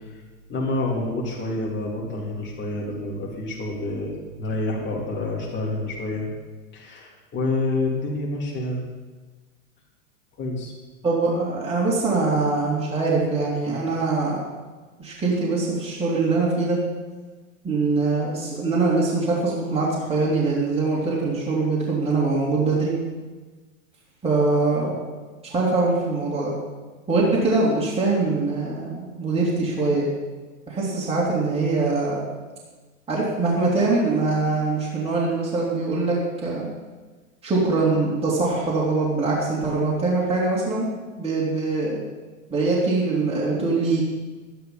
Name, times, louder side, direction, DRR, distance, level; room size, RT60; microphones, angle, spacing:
voice 1, 0.5-6.3 6.7-8.8 10.4-10.7, left 2 dB, 25° left, -3 dB, 3.5 m, -28 dB
voice 2, 11.0-14.5 15.0-16.8 17.6-22.9 24.2-25.0 25.4-26.5 27.1-30.0 30.7-32.2 33.1-36.7 37.4-40.9 41.1-42.0 42.5-44.0, right 3 dB, 15° right, -5 dB, 2.8 m, -23 dB
12.0 x 10.5 x 5.5 m, 1.3 s
hypercardioid pair, 120°, 41 cm